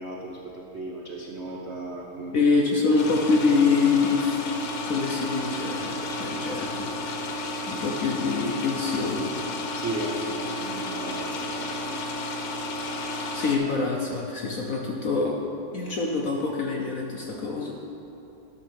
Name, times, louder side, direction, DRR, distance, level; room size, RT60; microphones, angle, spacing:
voice 1, 0.0-2.5 9.7-12.0, right 2 dB, 70° right, -1 dB, 0.6 m, -35 dB
voice 2, 2.3-4.4 4.8-7.4 7.7-9.5 13.3-15.3 15.7-17.7, left 4 dB, 60° left, -1 dB, 0.9 m, -25 dB
sound 1, 3.0-13.6, left 2 dB, 75° left, 1.8 m, -32 dB
12.0 x 6.2 x 6.3 m, 3.0 s
omnidirectional pair, 2.3 m